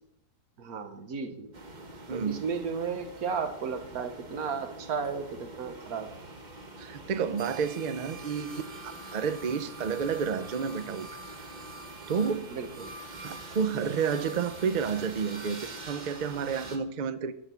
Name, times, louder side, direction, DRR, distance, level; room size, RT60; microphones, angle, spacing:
voice 1, 0.6-1.5 2.1-6.1 12.5-12.9, right 5 dB, 65° right, 9 dB, 1.5 m, -34 dB
sound 1, 1.5-16.8, right 2 dB, 30° right, 1.0 m, -44 dB
voice 2, 6.8-11.1 12.1-12.5 13.2-17.3, right 6 dB, 80° right, 12 dB, 0.4 m, -30 dB
12.0 x 6.4 x 6.8 m, 0.81 s
omnidirectional pair, 1.7 m